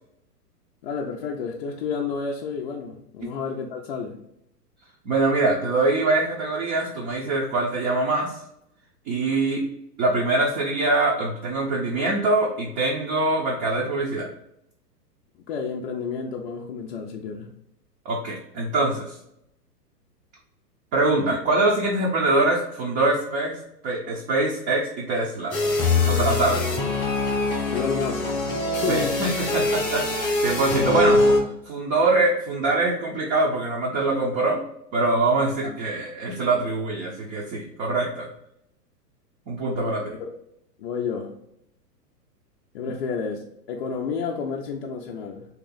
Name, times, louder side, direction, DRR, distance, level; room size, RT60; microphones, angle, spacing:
voice 1, 0.8-4.2 15.5-17.5 27.7-28.3 28.7-29.2 30.8-30.9 35.6-35.8 39.8-40.3 40.8-41.4 42.7-45.5, left 6 dB, 40° left, -1 dB, 0.5 m, -30 dB
voice 2, 5.0-8.3 9.1-9.6 10.0-14.3 18.0-19.1 20.9-23.6 23.8-25.6 26.1-26.6 28.9-31.3 31.7-34.6 34.9-38.3 39.5-40.0, right 2 dB, 30° right, -3 dB, 0.7 m, -23 dB
sound 1, 25.5-31.4, left 2 dB, 10° left, 0.8 m, -23 dB
2.9 x 2.9 x 3.9 m, 0.77 s
hypercardioid pair, 125°, 49 cm